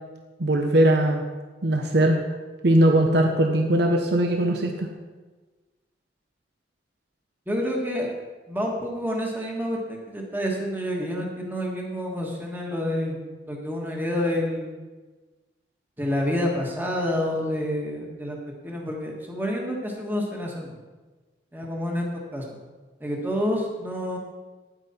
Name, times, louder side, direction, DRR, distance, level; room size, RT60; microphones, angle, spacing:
voice 1, 0.4-1.2 1.6-2.2 2.6-4.9, right 1 dB, 65° right, 3 dB, 0.9 m, -20 dB
voice 2, 7.5-8.1 8.5-14.8 16.0-18.4 18.6-20.7 21.5-22.6 23.0-24.2, equal, 10° right, -1 dB, 1.5 m, -28 dB
10.0 x 9.1 x 4.3 m, 1.3 s
head